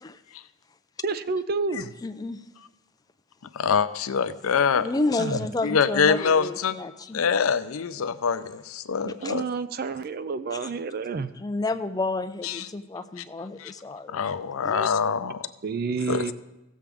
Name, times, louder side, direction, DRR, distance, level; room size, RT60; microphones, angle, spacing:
voice 1, 1.0-1.9 5.2-5.5 9.0-11.3 14.7-14.9 15.6-16.3, right 4 dB, 45° right, 13 dB, 0.4 m, -29 dB
voice 2, 2.0-2.4 4.7-7.3 9.2-9.3 10.5-10.7 11.4-14.2 14.6-14.7, left 2 dB, 20° left, 9 dB, 0.4 m, -30 dB
voice 3, 3.5-4.9 5.6-6.7 7.1-9.4 12.4-12.7 13.6-13.7 14.1-15.5 16.1-16.2, left 6 dB, 80° left, 13 dB, 0.5 m, -24 dB
16.0 x 7.4 x 3.5 m, 0.98 s
head